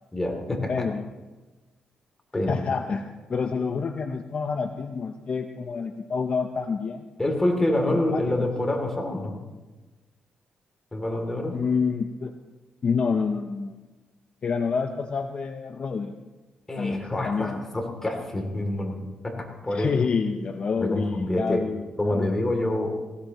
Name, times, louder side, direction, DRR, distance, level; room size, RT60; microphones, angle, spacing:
voice 1, 0.1-0.9 2.3-2.6 7.2-9.4 10.9-11.6 16.7-19.9 20.8-21.6 22.0-23.0, left 1 dB, 15° left, 2 dB, 2.9 m, -27 dB
voice 2, 0.7-1.1 2.5-7.1 7.9-8.5 11.5-12.3 12.8-13.8 14.4-16.2 16.8-17.6 19.7-22.4, left 5 dB, 45° left, 6 dB, 0.7 m, -28 dB
18.5 x 16.0 x 3.1 m, 1.2 s
cardioid pair, 105°, 3 cm